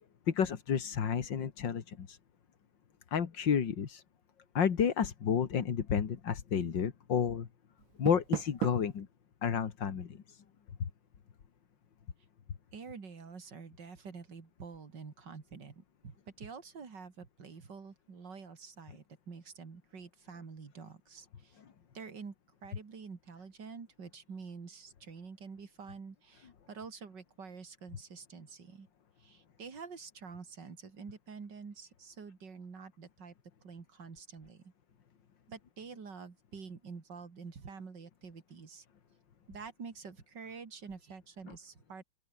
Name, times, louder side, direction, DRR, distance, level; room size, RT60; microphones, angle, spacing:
voice 1, 0.3-2.2 3.1-4.0 4.5-7.5 8.0-9.1 9.4-10.4 10.8-10.9, left 7 dB, 70° left, 2.4 m, -31 dB
Door, 7.8-9.0, right 13 dB, 90° right, 1.6 m, -37 dB
voice 2, 12.7-21.6 21.9-22.3 22.6-28.9 29.2-33.3 33.6-34.7 35.5-38.8 39.5-42.0, right 5 dB, 65° right, 3.4 m, -48 dB
open air
omnidirectional pair, 2.1 m